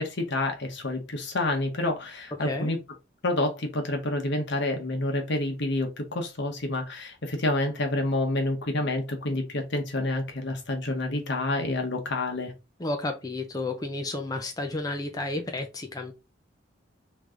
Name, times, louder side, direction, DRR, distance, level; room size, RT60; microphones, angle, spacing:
voice 1, 0.0-2.8 3.2-12.5, left 2 dB, 65° left, 1.1 m, -28 dB
voice 2, 2.4-2.7 12.8-16.1, left 2 dB, 20° left, 0.6 m, -32 dB
3.3 x 3.2 x 3.7 m
head